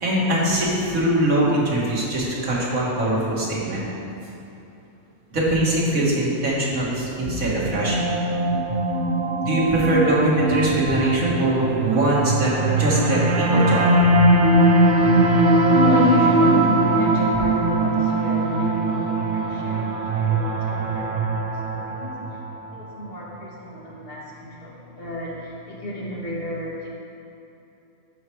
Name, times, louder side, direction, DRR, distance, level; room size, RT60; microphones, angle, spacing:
voice 1, 0.0-3.8 5.3-8.1 9.4-12.5 12.8-13.8, right 1 dB, 85° right, -6 dB, 2.3 m, -22 dB
sound 1, 7.2-22.5, right 2 dB, 50° right, 0.7 m, -21 dB
voice 2, 15.0-22.2 22.7-26.9, left 1 dB, 45° left, -5 dB, 1.8 m, -28 dB
13.5 x 4.7 x 4.7 m, 2.9 s
omnidirectional pair, 1.4 m